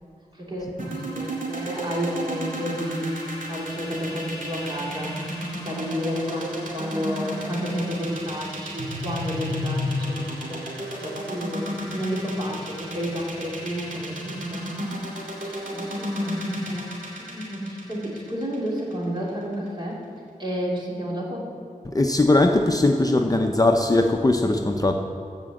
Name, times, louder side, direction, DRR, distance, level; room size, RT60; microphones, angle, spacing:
voice 1, 0.3-5.4 5.6-14.7 15.4-20.0 20.4-21.5, equal, 30° right, -4 dB, 2.8 m, -31 dB
sound 1, 0.8-18.9, equal, 65° right, 2.5 m, -32 dB
voice 2, 21.9-24.9, left 2 dB, 25° left, 3 dB, 0.6 m, -20 dB
15.0 x 5.2 x 7.6 m, 2.3 s
wide cardioid pair, 95°, 15 cm